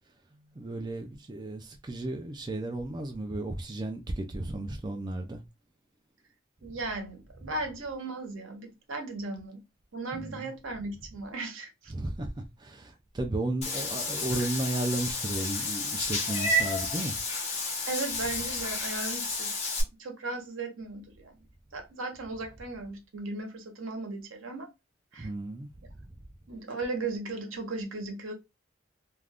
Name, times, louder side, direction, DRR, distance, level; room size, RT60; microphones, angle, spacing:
voice 1, 0.6-5.4 10.1-10.5 11.9-12.3 12.6-17.1 25.2-25.7 26.0-26.1, right 2 dB, 20° right, 0.3 m, -34 dB
voice 2, 6.6-9.6 9.9-11.7 17.9-19.5 20.0-21.3 21.7-24.7 25.1-25.3 26.5-28.3, right 3 dB, 85° right, 0.8 m, -36 dB
Meow / Water / Bathtub (filling or washing), 13.6-19.8, left 2 dB, 30° left, 0.8 m, -31 dB
2.4 x 2.3 x 3.4 m
head